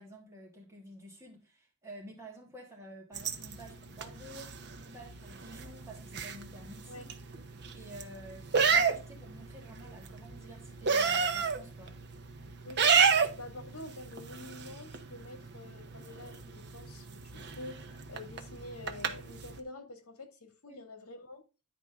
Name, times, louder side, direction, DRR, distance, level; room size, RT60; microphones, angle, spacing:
voice 1, 0.0-7.0 7.7-11.9 20.7-20.8, equal, 15° right, 3.0 m, -50 dB
sound 1, 3.1-19.6, right 6 dB, 50° right, 0.9 m, -33 dB
voice 2, 12.6-21.4, left 2 dB, 75° left, 1.9 m, -47 dB
10.0 x 4.9 x 3.5 m
head